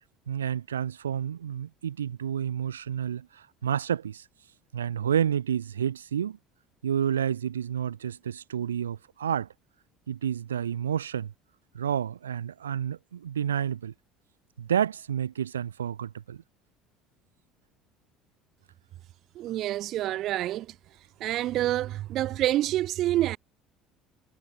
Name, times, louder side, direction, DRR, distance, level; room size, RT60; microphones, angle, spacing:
voice 1, 0.3-4.2 4.7-6.4 6.8-9.5 10.1-11.3 11.7-13.9 14.6-16.4, right 9 dB, 80° right, 0.7 m, -30 dB
voice 2, 19.3-20.7 21.2-23.4, right 14 dB, 55° right, 1.8 m, -27 dB
figure-of-eight pair, 60°, 0 cm